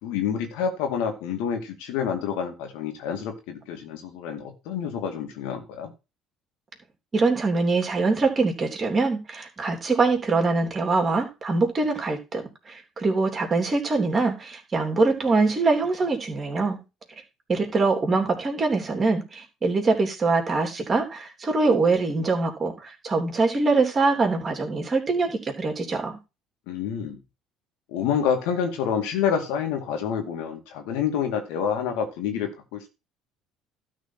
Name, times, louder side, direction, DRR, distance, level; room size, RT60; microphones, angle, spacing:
voice 1, 0.0-5.9 26.7-27.2 27.9-32.9, left 7 dB, 75° left, 5 dB, 2.2 m, -28 dB
voice 2, 7.1-16.8 17.5-26.2, right 3 dB, 35° right, 2 dB, 3.1 m, -23 dB
12.5 x 4.3 x 5.9 m, 0.27 s
hypercardioid pair, 65°, 0 cm